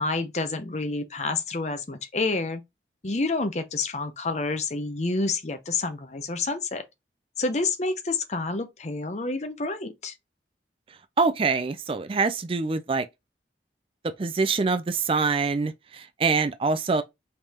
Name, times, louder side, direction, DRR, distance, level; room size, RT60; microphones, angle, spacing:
voice 1, 0.0-2.6 3.0-6.8 7.4-10.1, left 3 dB, 40° left, 0.7 m, -28 dB
voice 2, 11.2-13.1 14.2-17.0, right 4 dB, 30° right, 0.4 m, -25 dB
5.2 x 3.5 x 2.9 m
head